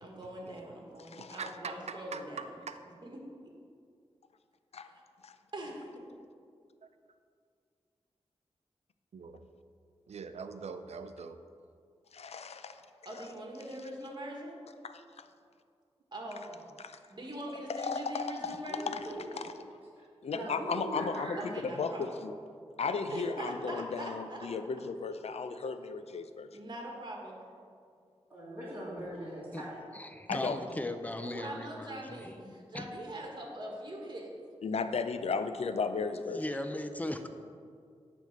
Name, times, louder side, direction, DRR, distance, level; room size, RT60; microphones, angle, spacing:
voice 1, 0.0-2.6 3.0-3.2 4.8-5.0 5.5-5.8 13.0-14.6 16.1-16.6 17.1-19.0 21.4-22.2 23.1-24.5 26.5-27.4 31.2-34.3, right 1 dB, 40° right, 0 dB, 1.5 m, -42 dB
voice 2, 1.2-2.8 6.8-6.9 9.1-9.5 10.1-11.4, right 5 dB, 80° right, 9 dB, 0.5 m, -43 dB
voice 3, 12.1-12.7 14.8-14.9 16.8-16.9 17.7-18.6 20.2-22.3 22.8-26.5 30.3-30.6 34.6-36.4, left 5 dB, 70° left, 10 dB, 0.5 m, -35 dB
voice 4, 18.7-19.4 20.3-21.5 28.3-29.8 30.3-30.9, right 1 dB, 15° right, -9 dB, 2.0 m, -41 dB
voice 5, 29.9-32.8 36.3-37.3, left 1 dB, 15° left, 7 dB, 0.5 m, -38 dB
9.2 x 3.5 x 6.5 m, 2.3 s
wide cardioid pair, 100°, 11 cm